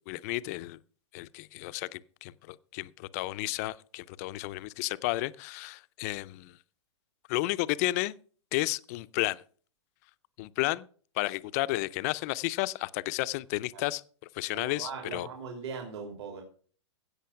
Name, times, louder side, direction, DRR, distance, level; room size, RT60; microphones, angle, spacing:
voice 1, 0.1-0.8 1.1-6.6 7.3-8.1 8.5-9.4 10.4-10.9 11.2-14.0 14.3-15.3, left 19 dB, 30° left, 0.4 m, -32 dB
voice 2, 14.5-16.4, right 5 dB, 65° right, 3.4 m, -40 dB
16.0 x 6.4 x 5.7 m
hypercardioid pair, 160°, 15 cm